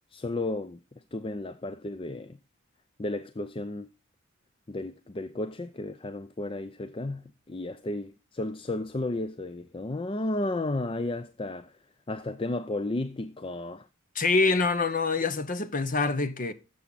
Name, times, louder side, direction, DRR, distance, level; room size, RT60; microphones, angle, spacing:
voice 1, 0.1-0.8 1.1-2.4 3.0-3.9 4.7-11.8 12.1-13.9, left 2 dB, 25° left, 0.5 m, -33 dB
voice 2, 14.1-16.5, left 3 dB, 40° left, 1.0 m, -25 dB
13.0 x 7.2 x 4.1 m
head